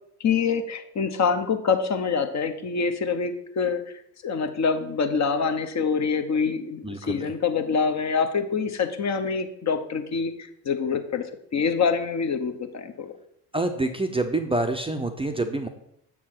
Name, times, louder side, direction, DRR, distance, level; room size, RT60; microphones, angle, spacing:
voice 1, 0.2-3.8 4.2-10.3 10.6-11.2 11.5-13.1, left 5 dB, 35° left, 7 dB, 1.0 m, -25 dB
voice 2, 6.8-7.3 13.5-15.7, right 2 dB, 10° right, 6 dB, 0.7 m, -27 dB
7.2 x 4.7 x 5.8 m, 0.73 s
figure-of-eight pair, 50°, 48 cm